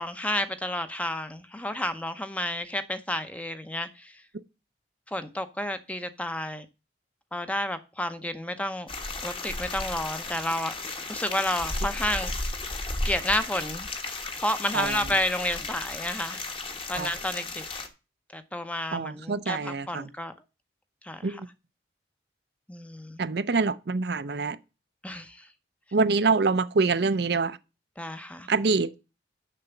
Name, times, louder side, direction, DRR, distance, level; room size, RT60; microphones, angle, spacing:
voice 1, 0.0-4.2 5.1-6.7 7.3-8.9 9.2-12.3 13.0-13.9 14.4-16.4 16.9-17.6 18.3-20.3 21.0-21.4 22.7-23.2 25.0-25.5 28.0-28.5, left 1 dB, 5° left, 0.7 m, -31 dB
sound 1, 8.9-17.9, left 2 dB, 30° left, 1.2 m, -34 dB
voice 2, 18.9-20.1 21.2-21.5 23.2-24.6 25.9-27.6 28.5-28.9, right 4 dB, 60° right, 0.5 m, -25 dB
6.8 x 6.1 x 6.9 m
head